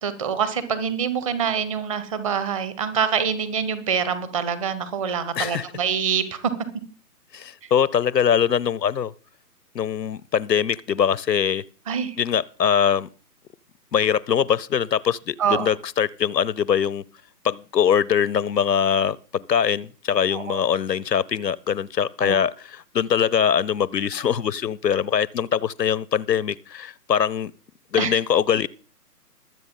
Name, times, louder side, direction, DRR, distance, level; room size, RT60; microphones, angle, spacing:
voice 1, 0.0-6.5 11.9-12.2 15.4-15.7 20.3-20.6 22.2-22.4 28.0-28.2, right 7 dB, 20° right, 1.1 m, -25 dB
voice 2, 7.3-9.1 9.7-11.6 12.2-13.1 13.9-17.0 17.4-27.5 27.9-28.7, left 8 dB, 80° left, 0.7 m, -22 dB
22.5 x 7.9 x 3.8 m
figure-of-eight pair, 140°, 48 cm